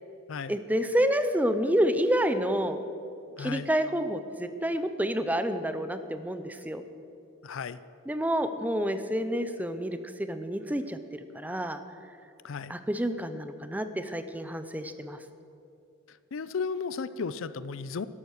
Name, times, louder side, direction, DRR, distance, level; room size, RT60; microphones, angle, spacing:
voice 1, 0.5-2.8 3.4-6.8 8.1-11.0 11.3-11.8 12.7-15.2, equal, 10° right, 10 dB, 0.6 m, -28 dB
voice 2, 3.4-3.7 7.4-7.8 12.4-12.7 16.3-18.1, left 5 dB, 70° left, 15 dB, 0.5 m, -34 dB
12.0 x 12.0 x 6.5 m, 2.7 s
head